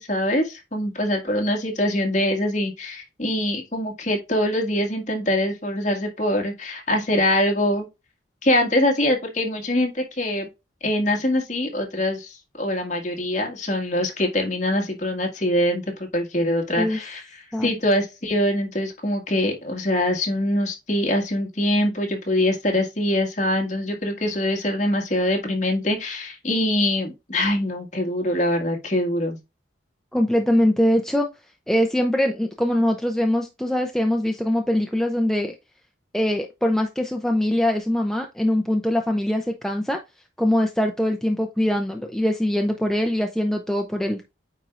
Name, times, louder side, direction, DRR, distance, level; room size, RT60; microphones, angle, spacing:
voice 1, 0.0-7.9 8.4-10.5 10.8-15.8 16.1-29.4, left 1 dB, 40° left, 1.9 m, -23 dB
voice 2, 30.1-31.3 31.7-35.5 36.1-40.0 40.4-44.2, left 1 dB, ahead, 0.5 m, -22 dB
9.0 x 4.5 x 2.5 m
head